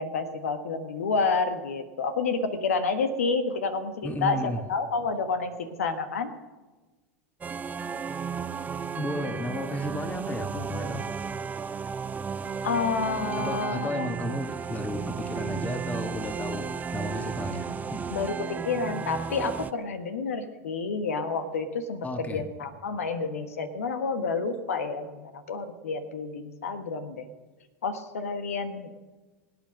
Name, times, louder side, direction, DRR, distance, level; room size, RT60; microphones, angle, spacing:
voice 1, 0.0-5.5 5.8-6.3 12.6-14.1 18.1-27.3 27.8-28.9, left 4 dB, 80° left, 9 dB, 1.3 m, -29 dB
voice 2, 4.0-4.6 9.0-11.1 13.4-18.3 22.0-22.4, left 1 dB, 20° left, 8 dB, 1.7 m, -33 dB
sound 1, 7.4-19.7, right 6 dB, 20° right, 0.6 m, -34 dB
23.0 x 9.0 x 6.4 m, 1.3 s
hypercardioid pair, 90°, 8 cm